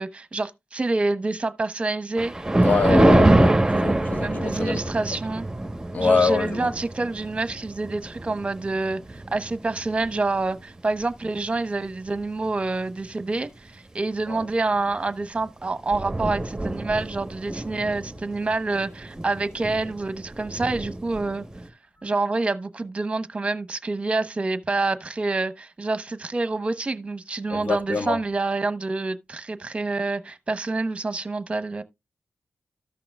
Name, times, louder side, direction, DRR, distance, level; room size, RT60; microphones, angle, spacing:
voice 1, 0.0-2.3 2.8-3.5 4.2-5.5 6.0-21.4 22.0-31.8, right 3 dB, 35° right, 1.0 m, -27 dB
Thunder, 2.2-10.7 11.2-11.5 12.2-12.3 12.6-12.7 14.9-15.1 15.4-15.5 15.7-21.7, right 1 dB, 15° right, 1.3 m, -25 dB
voice 2, 2.6-4.8 5.9-6.8 14.3-14.4 27.5-28.2, left 4 dB, 55° left, 1.5 m, -25 dB
14.0 x 5.8 x 2.4 m
cardioid pair, 60°, 3 cm